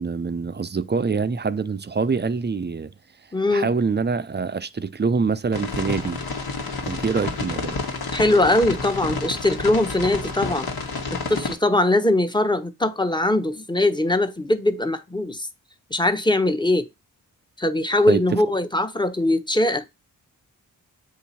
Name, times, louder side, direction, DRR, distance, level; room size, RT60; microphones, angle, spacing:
voice 1, 0.0-2.9 3.5-6.2 6.9-7.9 18.1-18.4, right 5 dB, 25° right, 0.6 m, -25 dB
voice 2, 3.3-3.7 8.1-10.7 11.3-15.5 15.9-16.9 17.6-19.8, left 1 dB, 10° left, 1.0 m, -21 dB
sound 1, 5.5-11.6, left 4 dB, 65° left, 1.6 m, -30 dB
8.2 x 2.8 x 4.2 m
supercardioid pair, 40°, 39 cm